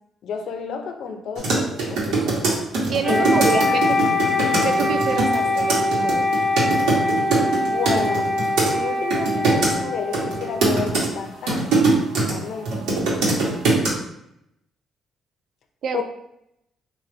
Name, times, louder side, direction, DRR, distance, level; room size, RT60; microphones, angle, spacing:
voice 1, 0.2-2.4 3.1-3.4 4.0-4.1 7.6-8.3 8.7-11.7 12.3-12.7 13.3-13.4 15.9-16.0, left 6 dB, 70° left, 5 dB, 0.5 m, -30 dB
sound 1, 1.4-8.7 9.1-9.7 10.1-12.3 12.7-13.9, right 3 dB, 85° right, 1.1 m, -21 dB
voice 2, 2.9-4.0 4.6-6.3 15.8-16.0, right 5 dB, 60° right, 7 dB, 0.4 m, -27 dB
Wind instrument woodwind instrument, 3.0-11.1, left 2 dB, ahead, 0.9 m, -23 dB
3.3 x 2.4 x 3.8 m, 0.78 s
cardioid pair, 90°, 0 cm